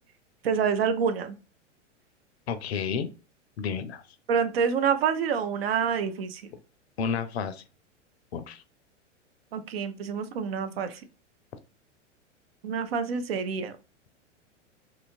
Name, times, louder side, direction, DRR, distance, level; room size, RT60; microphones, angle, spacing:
voice 1, 0.4-1.3 4.3-6.4 9.5-11.0 12.6-13.7, right 6 dB, 55° right, 9 dB, 0.5 m, -27 dB
voice 2, 2.5-3.1 3.6-4.0 7.0-7.6 8.3-8.6, left 6 dB, 60° left, 10 dB, 0.5 m, -31 dB
2.8 x 2.4 x 2.5 m, 0.33 s
figure-of-eight pair, 95°, 37 cm